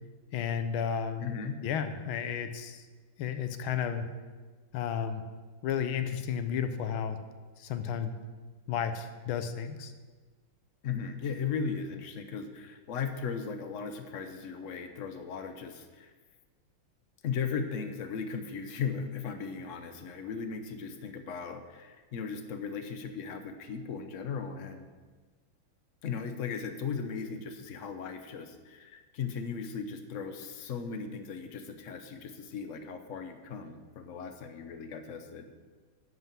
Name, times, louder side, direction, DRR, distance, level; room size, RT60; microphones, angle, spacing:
voice 1, 0.3-1.3 1.6-2.8 3.2-4.1 4.7-5.2 5.6-7.2 7.6-8.1 8.7-9.9, left 8 dB, 90° left, 9 dB, 1.6 m, -32 dB
voice 2, 1.2-1.6 10.8-16.1 17.2-24.9 26.0-35.5, left 6 dB, 50° left, 7 dB, 1.0 m, -37 dB
11.0 x 5.6 x 7.5 m, 1.4 s
omnidirectional pair, 2.2 m